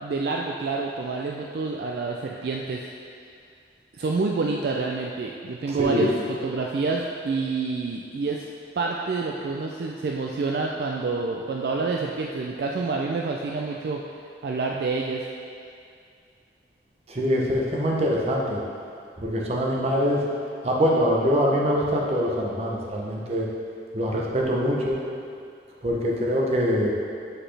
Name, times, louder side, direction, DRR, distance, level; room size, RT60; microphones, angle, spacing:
voice 1, 0.0-2.8 4.0-8.5 8.8-14.0 14.4-15.2, right 4 dB, 60° right, -1 dB, 0.3 m, -28 dB
voice 2, 5.7-6.2 17.1-18.6 19.2-20.2 20.6-23.5 23.9-25.0 25.8-26.9, equal, 35° right, -3 dB, 0.7 m, -24 dB
7.7 x 4.1 x 3.3 m, 2.4 s
head